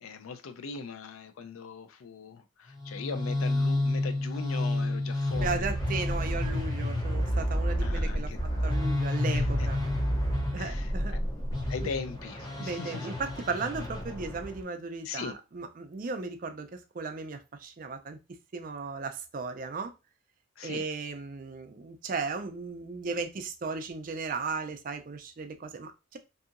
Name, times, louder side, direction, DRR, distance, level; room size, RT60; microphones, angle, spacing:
voice 1, 0.0-5.7 7.8-8.6 9.3-9.7 10.6-11.2 11.7-13.1 15.0-15.3 20.6-20.9, left 5 dB, 85° left, 0.4 m, -40 dB
sound 1, 2.8-14.6, left 1 dB, 20° left, 0.5 m, -30 dB
voice 2, 5.4-8.3 8.6-9.8 10.5-11.1 12.6-18.2 18.5-19.9 20.6-26.2, right 4 dB, 40° right, 0.3 m, -36 dB
2.7 x 2.7 x 2.4 m
head